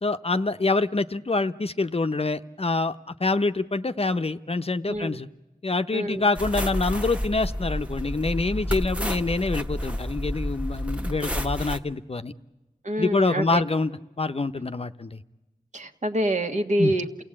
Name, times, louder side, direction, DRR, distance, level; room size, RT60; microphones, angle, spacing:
voice 1, 0.0-5.3 5.6-12.3 13.0-13.9 14.2-15.2 16.8-16.9, left 3 dB, 40° left, 10 dB, 0.7 m, -26 dB
voice 2, 4.9-5.2 5.9-6.2 12.8-13.6 15.7-17.2, right 1 dB, 50° right, 6 dB, 1.6 m, -26 dB
sound 1, 6.3-11.8, equal, 10° right, 1.3 m, -30 dB
28.5 x 16.5 x 8.7 m, 1.1 s
cardioid pair, 50°, 15 cm